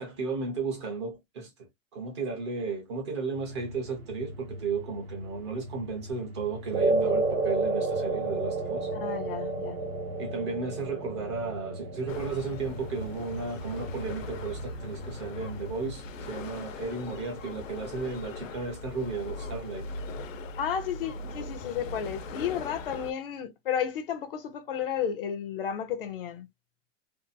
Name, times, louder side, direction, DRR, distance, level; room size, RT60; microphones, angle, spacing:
voice 1, 0.0-8.9 10.2-19.9, right 4 dB, 25° right, 0.5 m, -34 dB
sound 1, 3.3-15.9, left 1 dB, 50° right, 0.8 m, -43 dB
sound 2, 6.7-15.2, right 3 dB, 85° right, 0.9 m, -31 dB
voice 2, 8.9-9.8 20.6-26.5, left 8 dB, 50° left, 0.5 m, -32 dB
sound 3, 12.1-23.1, left 2 dB, 90° left, 0.8 m, -40 dB
2.6 x 2.4 x 2.5 m
supercardioid pair, 175°, 38 cm